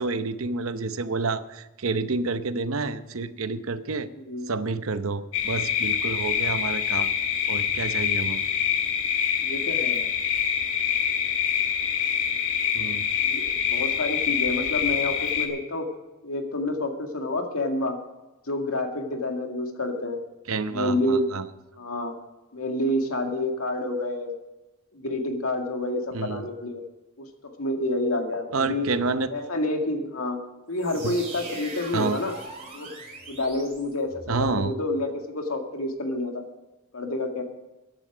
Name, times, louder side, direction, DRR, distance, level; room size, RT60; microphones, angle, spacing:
voice 1, 0.0-4.1 4.5-7.1 7.5-8.4 12.7-13.1 20.5-21.5 26.1-26.5 28.5-29.5 31.0-31.2 31.9-32.2 34.3-34.7, right 3 dB, 75° right, 12 dB, 0.8 m, -29 dB
voice 2, 4.1-4.5 9.4-10.1 13.2-15.9 16.2-18.0 18.5-20.2 20.7-21.3 21.8-22.1 22.5-24.3 24.9-26.8 27.2-27.3 27.6-28.9 29.3-30.4 30.7-32.3 32.7-32.9 33.3-36.3 36.9-37.4, left 1 dB, 90° left, 3 dB, 2.1 m, -28 dB
sound 1, 5.3-15.5, left 8 dB, 60° left, 2.0 m, -25 dB
sound 2, 30.7-34.5, right 3 dB, 30° right, 4.4 m, -41 dB
15.0 x 11.0 x 5.0 m, 1.0 s
head